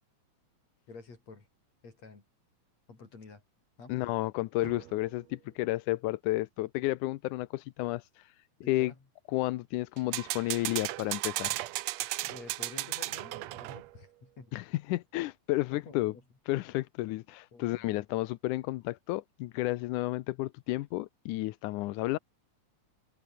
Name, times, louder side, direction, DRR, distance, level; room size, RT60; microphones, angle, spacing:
voice 1, 0.9-1.5 1.8-2.2 2.9-3.4 3.8-4.0 8.6-9.0 12.3-14.6 15.7-16.2 17.5-18.0, left 4 dB, 55° left, 6.8 m, -50 dB
voice 2, 3.9-8.9 9.3-11.6 14.5-16.1 16.5-22.2, left 18 dB, 85° left, 2.2 m, -32 dB
sound 1, 4.6-5.1 10.0-14.0, right 17 dB, 75° right, 1.7 m, -35 dB
omnidirectional pair, 3.6 m